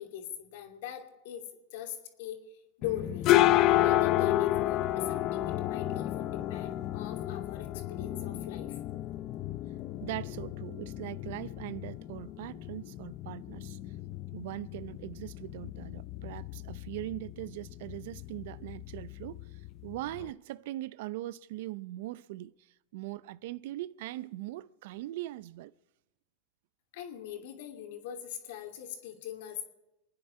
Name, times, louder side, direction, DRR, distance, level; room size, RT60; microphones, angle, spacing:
voice 1, 0.0-1.4 1.7-3.3 3.8-8.8 26.9-29.7, left 10 dB, 70° left, 2.7 m, -41 dB
sound 1, 2.8-20.3, left 14 dB, 45° left, 0.6 m, -31 dB
voice 2, 10.0-13.8 14.3-22.5 22.9-25.7, right 16 dB, 65° right, 0.5 m, -41 dB
27.5 x 9.7 x 4.7 m
hypercardioid pair, 115°, 0 cm